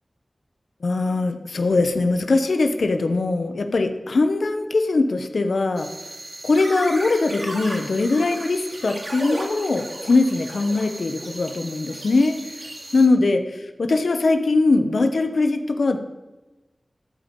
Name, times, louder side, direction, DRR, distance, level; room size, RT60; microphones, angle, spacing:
voice 1, 0.8-5.9 6.4-12.6 12.9-13.4 13.8-16.0, left 3 dB, 80° left, 7 dB, 0.8 m, -21 dB
sound 1, 5.8-13.1, right 1 dB, 50° right, 2.1 m, -35 dB
13.0 x 5.2 x 7.6 m, 1.1 s
wide cardioid pair, 80°, 0 cm